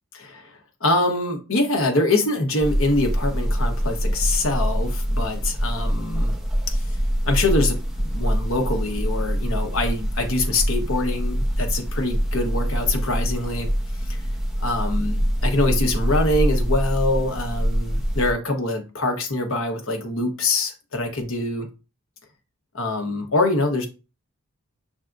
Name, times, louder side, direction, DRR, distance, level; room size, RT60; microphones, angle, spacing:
voice 1, 0.1-0.5 0.8-6.3 6.7-6.8 7.2-13.7 14.1-14.2 14.6-21.7 22.7-23.9, left 2 dB, 65° left, 1.1 m, -24 dB
sound 1, 2.6-18.3, equal, ahead, 0.9 m, -24 dB
5.7 x 3.6 x 2.6 m
head